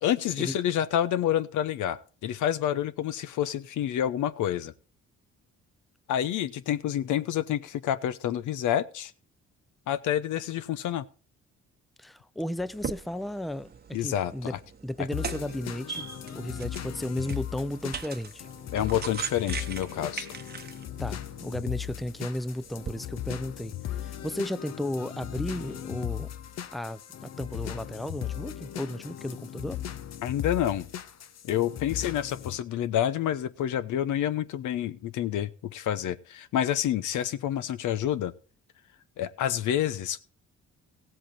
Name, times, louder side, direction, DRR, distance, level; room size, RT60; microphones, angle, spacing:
voice 1, 0.0-4.7 6.1-9.1 9.9-11.0 13.9-14.6 18.7-20.3 30.2-30.9 31.4-38.3 39.2-40.2, left 11 dB, 80° left, 0.9 m, -28 dB
voice 2, 12.0-14.5 14.8-18.4 21.0-23.7 24.0-26.3 26.7-29.8, left 1 dB, ahead, 0.5 m, -34 dB
sound 1, 12.6-23.0, right 6 dB, 30° right, 0.9 m, -41 dB
sound 2, 15.1-32.6, left 11 dB, 60° left, 0.8 m, -38 dB
16.0 x 7.9 x 4.3 m
cardioid pair, 90°, 30 cm